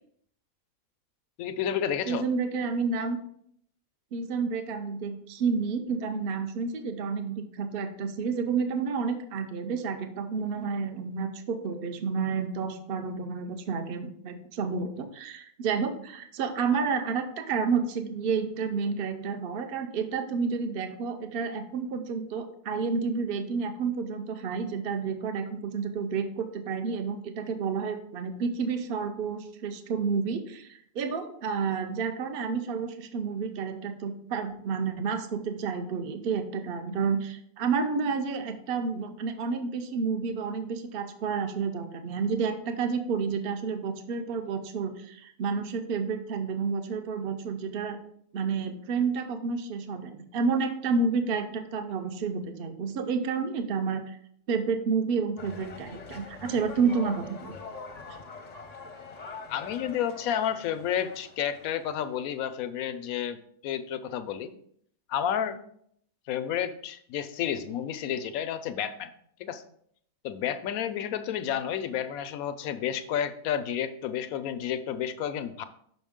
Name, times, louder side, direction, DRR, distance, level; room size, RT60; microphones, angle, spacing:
voice 1, 1.4-2.3 59.5-63.4 63.6-64.5 65.1-65.6 66.3-69.1 69.4-69.6 70.2-75.6, left 9 dB, 90° left, 11 dB, 1.1 m, -31 dB
voice 2, 2.1-3.2 4.1-48.0 48.3-54.2 54.5-57.5, right 5 dB, 50° right, 7 dB, 0.8 m, -30 dB
sound 1, 55.4-62.2, left 4 dB, 40° left, 0.6 m, -44 dB
6.3 x 5.9 x 3.6 m, 0.66 s
omnidirectional pair, 1.4 m